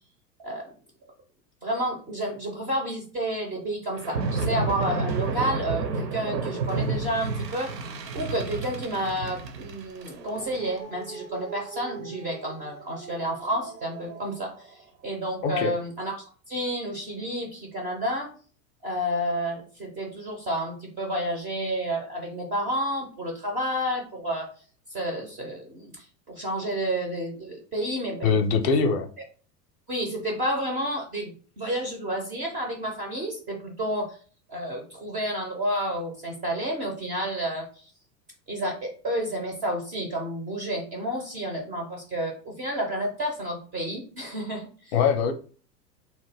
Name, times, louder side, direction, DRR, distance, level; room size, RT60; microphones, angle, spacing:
voice 1, 1.6-7.7 8.1-16.2 16.5-18.3 18.8-24.5 24.9-28.4 29.9-34.2 34.5-37.9 38.5-44.9, equal, 20° right, 0 dB, 0.3 m, -30 dB
sound 1, 4.0-14.5, right 4 dB, 80° right, 0.6 m, -32 dB
voice 2, 15.4-15.7 28.2-29.1 44.9-45.3, left 5 dB, 40° left, 6 dB, 0.5 m, -22 dB
2.9 x 2.1 x 3.3 m, 0.41 s
figure-of-eight pair, 90°, 50 cm